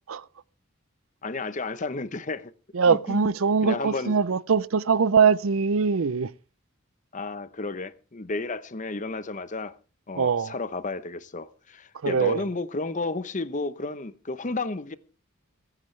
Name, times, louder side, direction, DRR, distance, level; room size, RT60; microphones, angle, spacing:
voice 1, 1.2-2.5 2.9-3.2 3.6-4.1 7.1-9.7 10.1-15.0, left 3 dB, 40° left, 0.8 m, -32 dB
voice 2, 2.7-6.3 10.2-10.5 12.0-12.4, right 5 dB, 85° right, 0.6 m, -22 dB
24.0 x 9.8 x 3.3 m
head